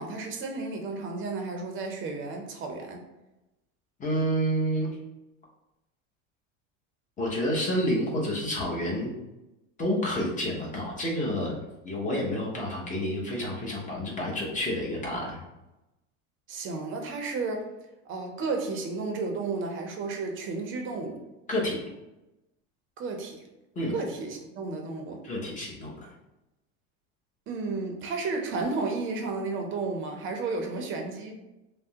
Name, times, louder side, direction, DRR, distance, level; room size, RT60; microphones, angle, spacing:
voice 1, 0.0-3.0 16.5-17.6 18.1-21.2 23.0-23.4 23.9-25.2 27.5-31.4, right 3 dB, 35° right, 3 dB, 0.6 m, -32 dB
voice 2, 4.0-4.9 7.2-9.1 9.8-11.6 11.8-15.4 21.5-21.8 23.8-23.9 25.2-26.1, equal, 20° left, -2 dB, 0.8 m, -29 dB
3.3 x 2.1 x 2.8 m, 0.97 s
supercardioid pair, 120°, 37 cm